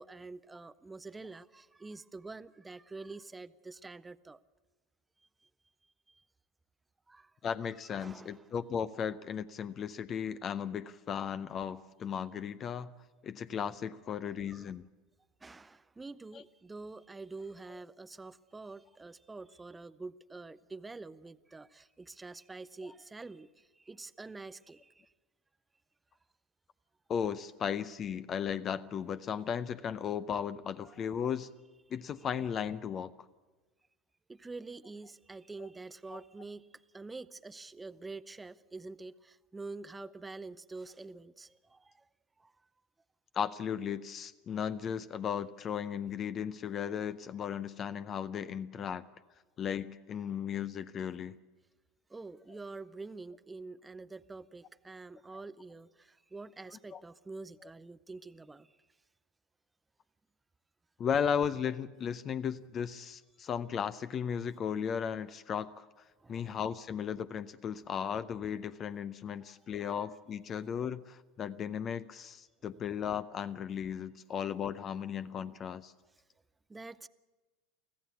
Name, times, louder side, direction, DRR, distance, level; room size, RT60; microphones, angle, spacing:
voice 1, 0.0-4.4 7.1-7.3 7.8-8.5 14.1-14.7 15.4-23.5 23.8-25.1 30.8-31.0 34.3-36.7 36.9-41.9 42.4-42.5 52.1-58.7 66.2-66.5 76.7-77.1, right 3 dB, 15° right, 13 dB, 0.6 m, -47 dB
voice 2, 7.4-12.9 13.2-14.8 16.3-16.4 17.7-17.8 27.1-31.5 31.9-33.1 35.6-35.7 36.1-36.2 43.3-49.0 49.6-51.4 56.9-57.0 61.0-65.9 66.3-75.9, left 8 dB, 35° left, 13 dB, 0.6 m, -36 dB
24.5 x 15.5 x 8.3 m, 1.3 s
figure-of-eight pair, 80°, 0 cm